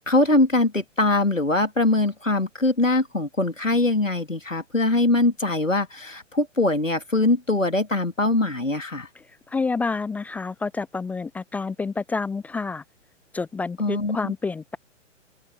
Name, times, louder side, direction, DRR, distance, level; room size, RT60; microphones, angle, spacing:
voice 1, 0.0-9.1 13.8-14.3, left 2 dB, 90° left, 3.1 m, -22 dB
voice 2, 9.2-12.8 13.3-14.8, left 4 dB, 5° left, 0.6 m, -29 dB
figure-of-eight pair, 115°, 37 cm